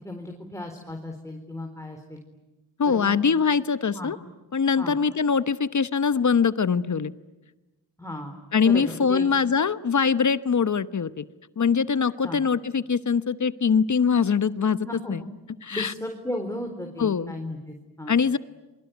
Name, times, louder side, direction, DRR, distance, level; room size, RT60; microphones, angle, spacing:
voice 1, 0.0-2.2 2.9-3.2 3.9-4.1 4.8-4.9 8.0-8.4 8.6-9.3 12.2-12.4 14.8-15.1 15.7-18.1, left 1 dB, 5° left, 3 dB, 4.1 m, -35 dB
voice 2, 2.8-4.2 4.5-7.1 8.5-11.2 11.6-15.2 15.6-15.9 17.0-17.3 18.1-18.4, left 6 dB, 40° left, 14 dB, 1.1 m, -23 dB
28.0 x 23.0 x 9.3 m, 1.1 s
supercardioid pair, 50°, 46 cm